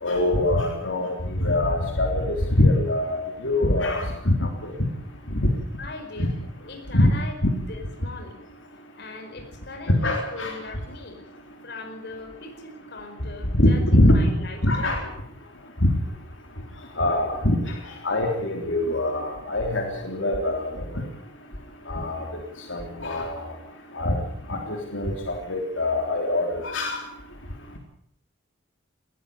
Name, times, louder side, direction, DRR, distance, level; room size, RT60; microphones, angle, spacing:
voice 1, 0.0-1.1 1.4-4.7 5.3-5.5 6.2-6.3 6.9-7.1 9.9-10.5 13.6-14.2 14.6-15.0 15.8-15.9 17.0-17.6 18.0-20.7 21.9-22.3 22.7-23.4 23.9-24.2 24.5-27.0, left 1 dB, 85° left, 2 dB, 3.5 m, -23 dB
voice 2, 5.8-6.3 6.6-8.4 9.0-11.2 11.6-15.1, left 2 dB, 60° left, 5 dB, 4.8 m, -40 dB
20.5 x 14.5 x 8.8 m, 0.73 s
head